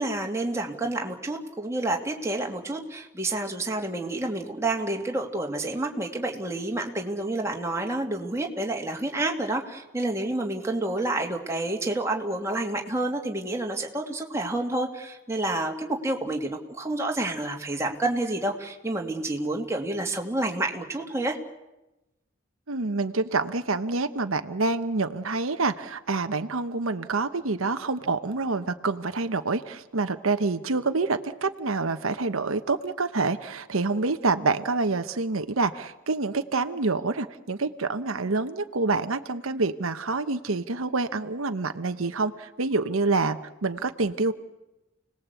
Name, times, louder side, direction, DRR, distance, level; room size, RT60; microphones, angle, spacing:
voice 1, 0.0-21.4, right 2 dB, 15° right, 1 dB, 2.6 m, -29 dB
voice 2, 22.7-44.3, right 3 dB, 85° right, 9 dB, 1.1 m, -27 dB
29.5 x 19.5 x 8.3 m, 1.0 s
head